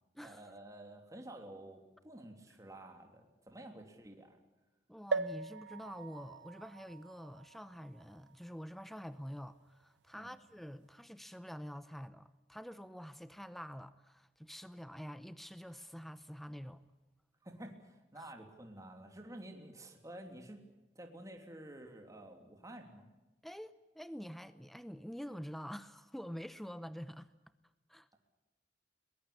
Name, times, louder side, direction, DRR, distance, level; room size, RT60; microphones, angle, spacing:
voice 1, 0.1-4.4 10.1-10.3 17.4-20.7 20.9-23.1, right 1 dB, 20° right, 3.0 m, -51 dB
voice 2, 4.9-16.8 18.2-18.3 23.4-27.3 27.9-28.1, equal, ahead, 0.7 m, -47 dB
sound 1, 5.1-8.8 9.4-9.5 9.7-9.8, right 4 dB, 85° right, 0.8 m, -41 dB
22.5 x 21.0 x 8.6 m
head